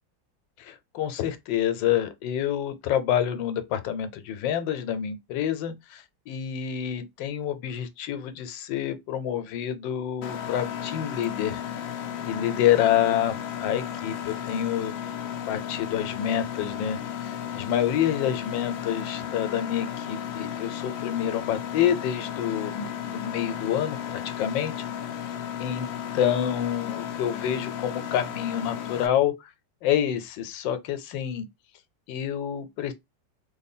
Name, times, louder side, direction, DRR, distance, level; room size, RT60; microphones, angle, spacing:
voice 1, 0.6-11.6 12.2-15.0 15.5-24.7 25.6-25.9 26.1-29.5 29.8-31.5 32.1-32.9, left 10 dB, 90° left, 1.3 m, -28 dB
Mechanisms, 10.2-29.1, left 9 dB, 65° left, 0.8 m, -34 dB
3.3 x 2.1 x 4.1 m
omnidirectional pair, 1.9 m